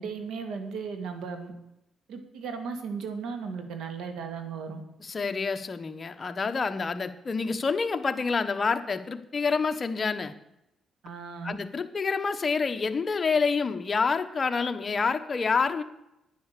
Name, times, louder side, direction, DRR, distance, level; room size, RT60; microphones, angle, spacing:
voice 1, 0.0-1.5 2.1-4.8 11.0-11.6, right 5 dB, 80° right, 7 dB, 2.1 m, -36 dB
voice 2, 5.0-10.3 11.4-15.8, left 5 dB, 35° left, 8 dB, 1.0 m, -28 dB
10.5 x 9.8 x 6.8 m, 0.85 s
cardioid pair, 100°, 0 cm